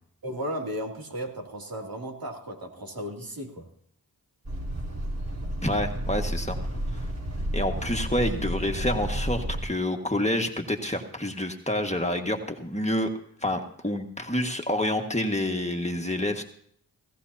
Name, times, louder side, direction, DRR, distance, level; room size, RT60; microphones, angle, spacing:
voice 1, 0.2-3.7, equal, 60° right, 0 dB, 2.9 m, -35 dB
sound 1, 4.4-9.6, right 1 dB, 45° right, 4.5 m, -31 dB
voice 2, 5.6-6.6 7.5-13.1 13.4-16.4, left 1 dB, 15° left, 3 dB, 1.8 m, -28 dB
18.0 x 15.5 x 2.9 m, 0.63 s
cardioid pair, 40°, 39 cm